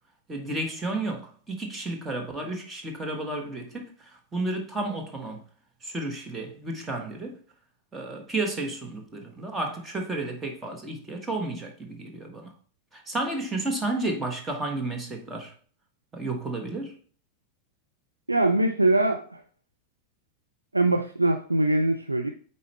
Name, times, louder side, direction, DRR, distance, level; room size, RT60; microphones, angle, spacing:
voice 1, 0.3-5.4 5.8-7.4 7.9-12.5 12.9-15.5 16.1-17.0, right 2 dB, 15° right, 1.3 m, -32 dB
voice 2, 18.3-19.4 20.7-22.3, right 2 dB, 85° right, 0.4 m, -22 dB
8.3 x 4.2 x 3.2 m
figure-of-eight pair, 90°, 0 cm